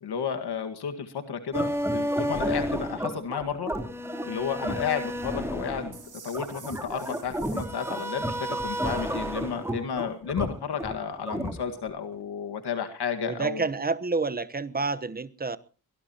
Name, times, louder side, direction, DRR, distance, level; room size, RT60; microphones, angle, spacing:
voice 1, 0.0-3.7 4.2-6.0 6.2-13.7, left 7 dB, 80° left, 1.9 m, -32 dB
sound 1, 1.5-11.9, right 1 dB, 5° right, 3.4 m, -31 dB
sound 2, 5.9-8.9, right 6 dB, 50° right, 3.3 m, -51 dB
voice 2, 13.2-15.6, right 4 dB, 25° right, 1.0 m, -29 dB
22.5 x 18.0 x 2.9 m
wide cardioid pair, 125°, 38 cm